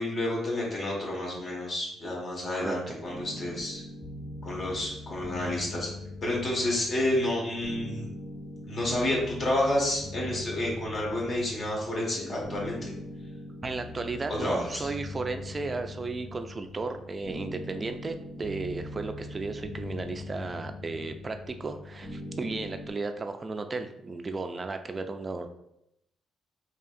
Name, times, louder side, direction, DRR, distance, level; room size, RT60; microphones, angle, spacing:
voice 1, 0.0-3.8 4.4-5.9 6.2-8.1 8.6-12.9 14.3-14.9, left 1 dB, 45° left, -3 dB, 1.5 m, -30 dB
voice 2, 2.6-2.9 13.6-25.5, right 3 dB, 30° right, 7 dB, 0.4 m, -34 dB
sound 1, 3.1-22.9, left 1 dB, 10° left, 1.3 m, -41 dB
4.5 x 2.8 x 2.5 m, 0.80 s
cardioid pair, 90°, 0 cm